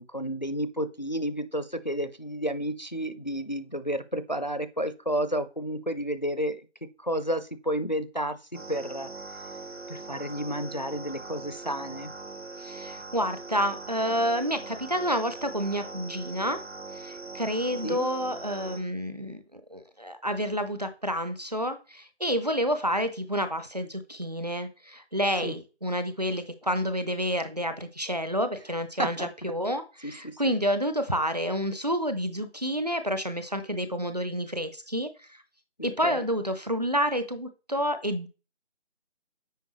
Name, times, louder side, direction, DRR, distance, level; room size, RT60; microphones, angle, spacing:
voice 1, 0.0-6.6 7.0-8.4 8.7-9.1 9.9-12.1 17.8-18.1 25.4-25.5 29.0-29.3 30.0-30.5 35.8-36.2, equal, 40° left, 12 dB, 0.5 m, -31 dB
sound 1, 8.5-18.8, right 3 dB, 65° right, 1.6 m, -41 dB
voice 2, 12.6-16.6 16.9-35.4 35.8-38.3, equal, 35° right, 9 dB, 0.6 m, -29 dB
9.2 x 4.6 x 3.1 m, 0.33 s
figure-of-eight pair, 170°, 34 cm